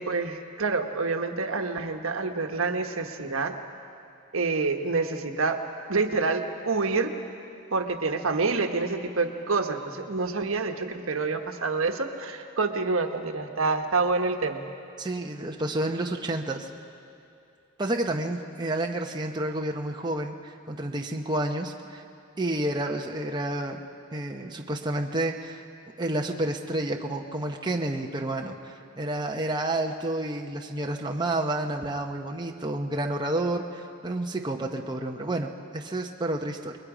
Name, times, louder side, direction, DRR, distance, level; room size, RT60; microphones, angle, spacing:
voice 1, 0.0-3.5 4.3-5.6 5.9-7.2 7.7-14.7, right 3 dB, 80° right, 5 dB, 1.3 m, -27 dB
voice 2, 15.0-16.7 17.8-22.0 22.4-23.8 24.1-25.6 26.0-36.8, right 1 dB, 20° right, 2 dB, 0.8 m, -30 dB
29.0 x 21.5 x 5.0 m, 2.6 s
head